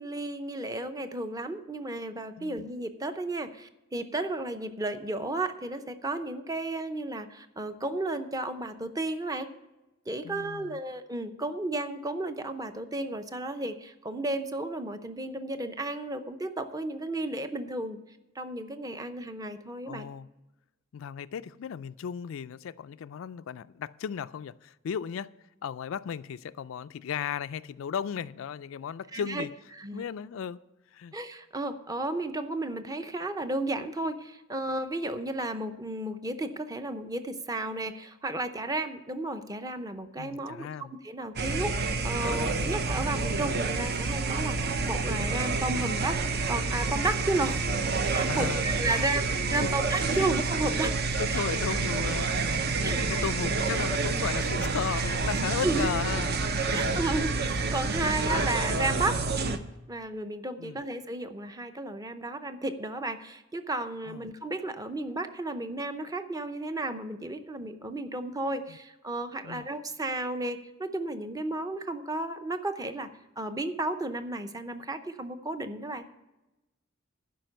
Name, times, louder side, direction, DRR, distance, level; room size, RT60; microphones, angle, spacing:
voice 1, 0.0-9.5 10.1-18.0 18.4-20.1 29.1-29.5 29.7-30.1 31.1-46.2 46.5-47.6 48.1-50.9 51.3-51.4 52.8-53.2 55.6-55.9 56.7-59.6 59.9-73.1 73.4-76.1, right 2 dB, 20° right, 0.7 m, -33 dB
voice 2, 10.2-10.8 19.8-20.3 20.9-25.3 25.6-29.5 29.9-30.6 30.9-31.1 40.2-40.9 42.5-42.8 48.2-48.7 48.9-49.0 49.6-49.7 50.1-50.3 51.2-57.1 60.6-60.8 64.1-64.3 68.7-68.8 69.4-69.7, left 7 dB, 75° left, 0.4 m, -36 dB
sound 1, 41.4-59.6, right 3 dB, 55° right, 0.7 m, -28 dB
12.0 x 5.2 x 7.9 m
head